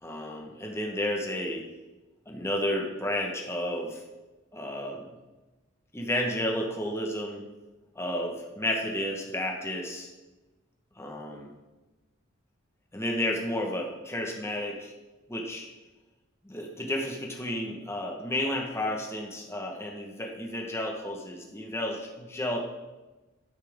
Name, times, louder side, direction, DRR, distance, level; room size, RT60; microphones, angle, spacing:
voice 1, 0.0-1.6 2.3-4.0 4.5-5.1 5.9-7.4 7.9-10.1 11.0-11.5 12.9-14.9 15.3-15.7 16.4-22.6, left 1 dB, 15° left, 1 dB, 1.1 m, -32 dB
12.0 x 5.9 x 3.5 m, 1.1 s
head